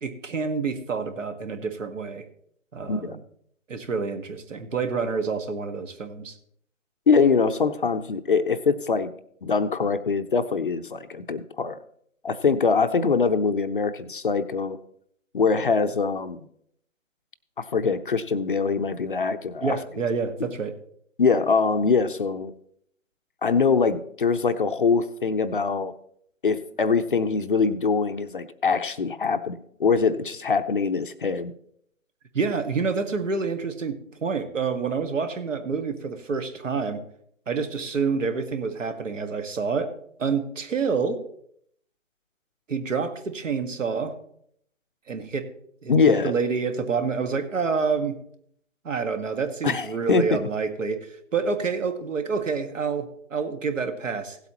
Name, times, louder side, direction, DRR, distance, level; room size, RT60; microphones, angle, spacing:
voice 1, 0.0-2.2 2.7-3.2 3.7-6.3 19.6-20.7 32.3-37.0 37.5-39.9 40.2-41.2 42.7-44.1 45.1-45.5 45.8-48.2 48.8-54.4, right 5 dB, 65° right, 8 dB, 1.6 m, -28 dB
voice 2, 7.1-9.1 9.4-11.8 12.2-14.8 15.3-16.5 17.6-19.8 20.4-20.5 21.2-22.5 23.4-25.9 26.4-31.5 45.9-46.3 49.6-50.5, left 5 dB, 40° left, 10 dB, 0.6 m, -23 dB
16.5 x 8.1 x 2.9 m, 0.68 s
hypercardioid pair, 155°, 40 cm